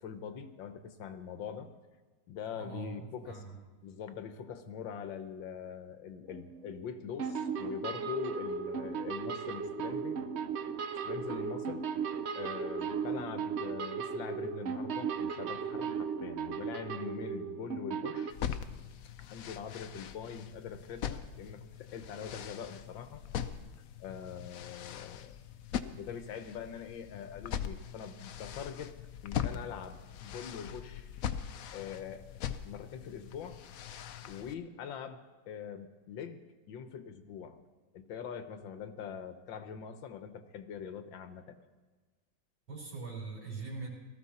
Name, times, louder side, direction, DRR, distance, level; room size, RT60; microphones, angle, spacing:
voice 1, 0.0-1.7 2.3-3.4 3.8-10.3 11.0-11.8 12.3-18.4 19.2-23.2 24.0-25.4 26.0-28.9 29.2-31.1 31.7-32.2 32.6-33.6 34.3-37.6 37.9-41.6, left 7 dB, 80° left, 9 dB, 1.7 m, -43 dB
voice 2, 2.5-3.6 42.7-43.9, right 4 dB, 85° right, -3 dB, 4.3 m, -42 dB
sound 1, 6.3-6.9 7.2-18.3, right 6 dB, 55° right, 0.7 m, -36 dB
sound 2, 18.3-34.5, left 9 dB, 65° left, 0.9 m, -41 dB
18.5 x 14.0 x 4.3 m, 1.3 s
omnidirectional pair, 2.1 m